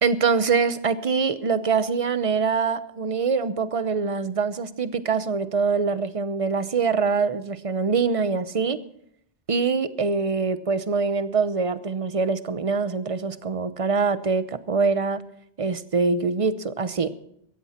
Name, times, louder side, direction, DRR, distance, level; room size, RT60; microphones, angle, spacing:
voice 1, 0.0-8.8 9.5-15.2 15.6-17.1, right 5 dB, 35° right, 13 dB, 0.7 m, -24 dB
17.0 x 14.0 x 4.3 m, 0.71 s
omnidirectional pair, 1.2 m